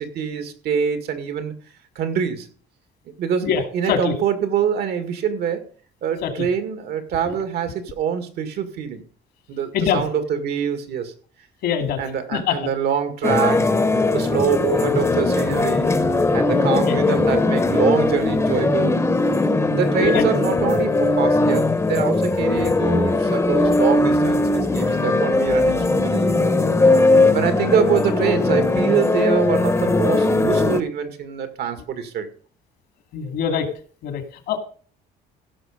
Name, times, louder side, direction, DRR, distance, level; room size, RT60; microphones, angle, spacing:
voice 1, 0.1-1.5 2.0-2.5 3.2-5.6 6.0-9.0 9.5-11.1 12.0-13.7 14.1-15.9 16.3-19.0 19.4-26.4 26.9-32.3, right 7 dB, 70° right, 2.1 m, -25 dB
voice 2, 3.4-4.1 6.2-6.5 9.7-10.0 11.6-12.0 12.3-12.5 16.7-17.0 20.0-20.2 33.1-33.7 34.0-34.2 34.5-34.6, left 7 dB, 75° left, 2.5 m, -23 dB
sound 1, 13.2-30.8, left 2 dB, 15° left, 1.0 m, -19 dB
15.5 x 6.0 x 5.1 m
cardioid pair, 110°, 17 cm